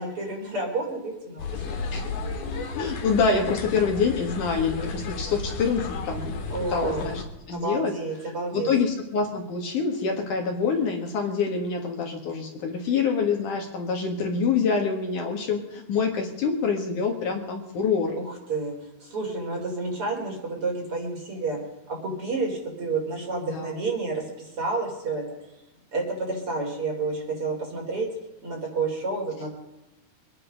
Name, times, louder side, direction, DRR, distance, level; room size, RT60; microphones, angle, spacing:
voice 1, 0.0-2.6 6.5-7.1 7.5-8.7 18.2-18.7 19.0-21.6 21.9-25.2 25.9-28.1 28.4-29.5, right 3 dB, 35° right, -1 dB, 4.6 m, -30 dB
sound 1, 1.4-7.2, left 4 dB, 80° left, 3.9 m, -33 dB
voice 2, 2.8-6.3 6.7-7.2 7.5-7.9 8.5-18.2 23.5-23.7, left 5 dB, 60° left, 2 dB, 3.1 m, -26 dB
24.5 x 10.0 x 5.2 m, 0.95 s
omnidirectional pair, 4.3 m